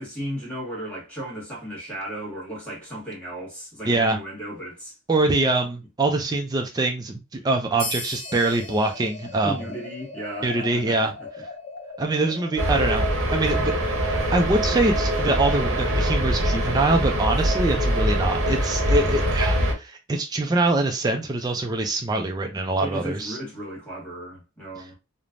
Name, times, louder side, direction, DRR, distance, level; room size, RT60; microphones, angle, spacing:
voice 1, 0.0-4.9 9.4-11.3 22.8-25.0, equal, 5° left, 1.4 m, -35 dB
voice 2, 3.9-4.2 5.1-9.6 10.4-11.1 12.0-13.7 14.1-23.4, right 2 dB, 20° right, 0.3 m, -24 dB
sound 1, 7.8-10.8, left 2 dB, 25° left, 1.6 m, -38 dB
sound 2, 8.2-13.1, left 4 dB, 45° left, 0.5 m, -40 dB
sound 3, 12.6-19.7, equal, 75° right, 0.8 m, -23 dB
3.2 x 2.0 x 2.4 m
head